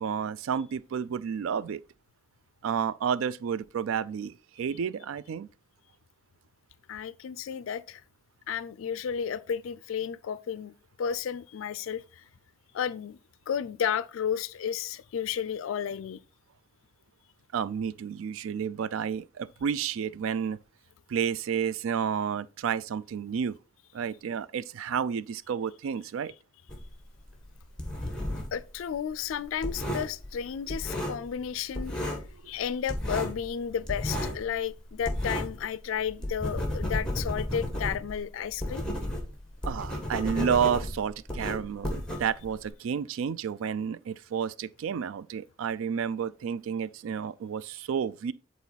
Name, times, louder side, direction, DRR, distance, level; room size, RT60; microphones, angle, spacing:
voice 1, 0.0-1.8 2.6-5.5 17.5-20.6 21.1-23.6 23.9-26.3 39.6-48.3, right 7 dB, 85° right, 0.3 m, -31 dB
voice 2, 6.9-8.0 8.5-10.7 11.0-12.0 12.7-13.2 13.5-16.2 28.5-31.9 32.5-38.8, left 8 dB, 80° left, 0.4 m, -32 dB
sound 1, 26.7-28.6 28.9-31.5 31.7-32.3 32.6-35.7 36.0-42.7, left 1 dB, 5° left, 1.4 m, -33 dB
8.3 x 4.1 x 3.9 m
head